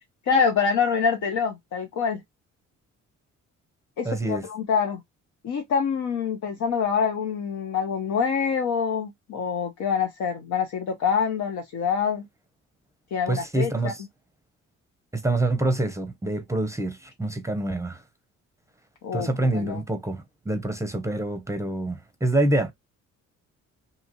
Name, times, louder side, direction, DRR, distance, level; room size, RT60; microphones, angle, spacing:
voice 1, 0.3-2.2 4.0-5.0 5.4-12.3 13.1-13.9 19.0-19.8, left 6 dB, 70° left, 0.8 m, -25 dB
voice 2, 4.0-4.5 13.3-14.0 15.1-18.0 19.1-22.7, right 2 dB, 10° right, 0.6 m, -26 dB
2.8 x 2.4 x 2.8 m
cardioid pair, 90°, 30 cm